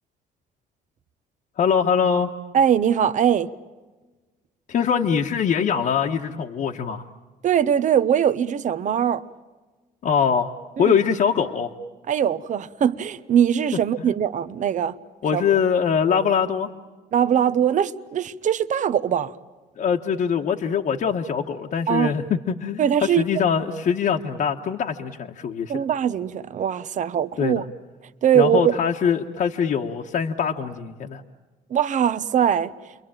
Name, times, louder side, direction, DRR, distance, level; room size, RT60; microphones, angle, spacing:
voice 1, 1.6-2.3 4.7-7.0 10.0-10.5 10.8-11.7 14.0-14.1 15.2-16.7 19.8-22.9 23.2-25.7 27.4-27.6 28.3-31.2, left 7 dB, 50° left, 1.3 m, -23 dB
voice 2, 2.5-3.5 7.4-9.2 10.8-11.0 12.1-15.0 15.3-15.4 17.1-19.3 21.9-22.1 22.8-23.2 25.7-27.6 28.2-28.8 31.7-32.7, right 9 dB, 50° right, 0.9 m, -21 dB
29.5 x 23.0 x 8.9 m
cardioid pair, 110°, 17 cm